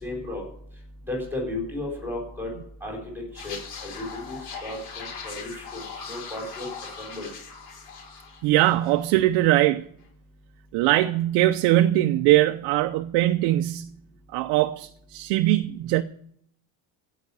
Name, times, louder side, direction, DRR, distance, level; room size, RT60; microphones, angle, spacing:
voice 1, 0.0-0.4 1.1-2.5 2.8-3.6 3.8-5.4 5.7-5.8 6.1-6.7 7.0-7.3, left 2 dB, 5° right, 4.3 m, -34 dB
sound 1, 3.3-9.1 9.3-9.6, left 5 dB, 55° left, 4.8 m, -40 dB
voice 2, 8.4-9.8 10.7-13.9 14.3-16.0, right 15 dB, 70° right, 0.7 m, -21 dB
16.0 x 5.9 x 8.5 m
cardioid pair, 155°, 43 cm